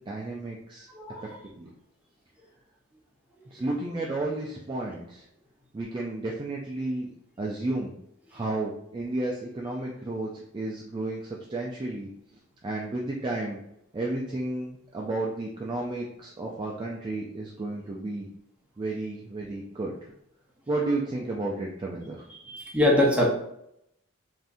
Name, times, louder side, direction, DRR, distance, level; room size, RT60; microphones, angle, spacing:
voice 1, 0.0-0.9 1.5-1.7 3.5-5.2 5.7-7.1 7.4-8.0 8.3-12.1 12.6-13.6 13.9-18.3 18.8-20.1 20.7-22.2, right 2 dB, 20° right, -2 dB, 0.3 m, -32 dB
voice 2, 0.9-1.4 4.8-4.9 20.8-20.9 22.3-23.3, left 1 dB, 5° right, -4 dB, 0.7 m, -24 dB
3.4 x 2.6 x 2.5 m, 0.78 s
head